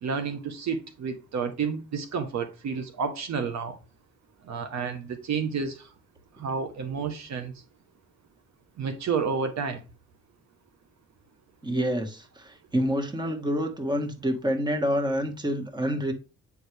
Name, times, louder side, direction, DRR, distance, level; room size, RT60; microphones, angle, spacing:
voice 1, 0.0-3.8 4.5-5.9 6.4-7.5 8.8-9.8, right 5 dB, 65° right, 1.2 m, -30 dB
voice 2, 11.6-16.1, equal, 15° right, 1.7 m, -27 dB
9.3 x 4.7 x 3.4 m
cardioid pair, 90°, 30 cm